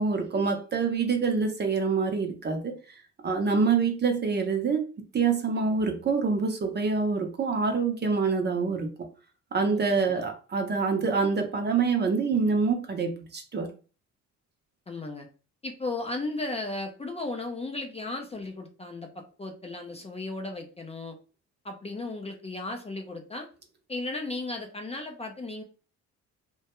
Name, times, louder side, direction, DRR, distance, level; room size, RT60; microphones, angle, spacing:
voice 1, 0.0-2.7 3.2-4.8 5.1-8.9 9.5-13.7, right 4 dB, 35° right, 5 dB, 0.6 m, -26 dB
voice 2, 9.7-10.3 14.9-15.3 15.6-21.2 21.6-23.5 23.9-25.6, left 2 dB, 20° left, 3 dB, 0.4 m, -35 dB
2.2 x 2.2 x 2.9 m, 0.35 s
cardioid pair, 90°, 30 cm